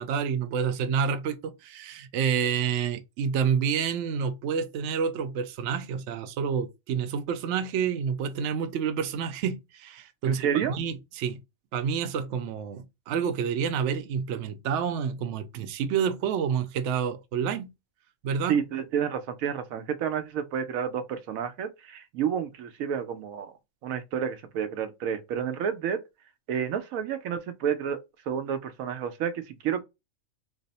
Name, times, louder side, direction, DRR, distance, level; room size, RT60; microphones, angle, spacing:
voice 1, 0.0-11.4 11.7-17.7 18.2-18.6, right 7 dB, 70° right, 0.8 m, -29 dB
voice 2, 10.2-10.8 18.5-23.5 23.8-26.0 26.5-28.0 28.3-29.8, right 8 dB, 90° right, 1.0 m, -30 dB
3.3 x 2.0 x 4.0 m
omnidirectional pair, 1.4 m